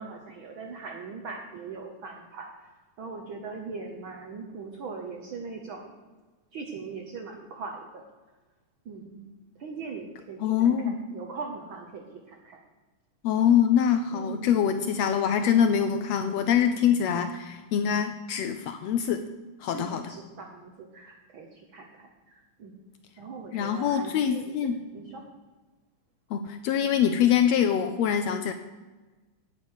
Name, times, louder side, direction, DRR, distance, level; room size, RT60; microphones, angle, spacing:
voice 1, 0.0-2.5 3.0-6.0 6.5-8.0 8.8-9.3 9.5-12.6 14.1-14.6 19.7-22.7 23.2-25.2, right 4 dB, 65° right, 1 dB, 1.3 m, -40 dB
voice 2, 10.4-11.0 13.2-19.2 19.6-20.1 23.5-24.8 26.3-28.5, left 8 dB, 80° left, 8 dB, 1.5 m, -24 dB
9.2 x 8.8 x 6.4 m, 1.3 s
omnidirectional pair, 3.5 m